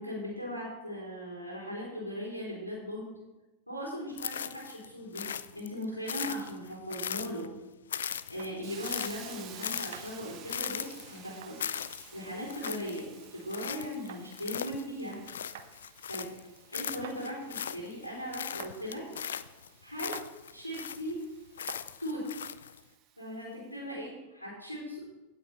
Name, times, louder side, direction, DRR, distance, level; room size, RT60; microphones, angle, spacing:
voice 1, 0.0-3.1 3.7-5.2 5.5-7.5 8.3-11.6 12.1-15.2 16.1-16.2 16.7-19.1 19.8-20.1 20.5-21.2 22.0-22.3 23.2-25.0, equal, 85° left, -4 dB, 3.6 m, -38 dB
sound 1, 4.2-4.9 5.1-7.6 7.9-16.4 16.7-18.1 18.3-21.2 21.6-22.8, left 8 dB, 65° left, 0.4 m, -39 dB
sound 2, 8.4-8.5 9.9-10.1 11.4-11.6 12.7-12.8 14.1-14.2 15.5-15.7 17.0-17.2 18.6-18.8 20.1-20.3 21.7-21.9, right 9 dB, 55° right, 0.9 m, -45 dB
Hiss, 8.6-23.4, right 9 dB, 35° right, 1.2 m, -53 dB
16.5 x 6.4 x 4.3 m, 1.1 s
figure-of-eight pair, 90°, 0 cm